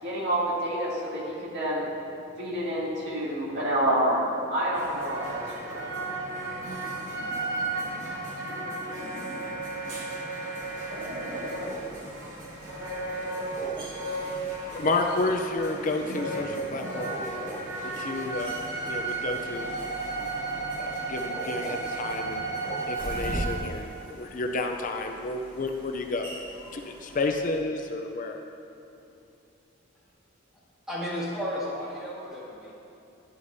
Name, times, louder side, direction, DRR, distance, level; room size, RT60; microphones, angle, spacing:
voice 1, 0.0-1.9 2.4-6.0, right 1 dB, 55° right, -7 dB, 2.4 m, -28 dB
sound 1, 4.7-23.5, right 3 dB, 75° right, 2.4 m, -34 dB
sound 2, 10.6-27.6, equal, 25° right, 2.4 m, -41 dB
voice 2, 14.6-17.1 18.0-18.5 18.9-19.7 20.8-22.5 22.9-26.3 26.7-28.4, left 3 dB, 40° left, 4 dB, 0.5 m, -31 dB
voice 3, 30.9-32.7, equal, 5° right, -9 dB, 2.1 m, -33 dB
11.5 x 10.5 x 2.7 m, 2.8 s
head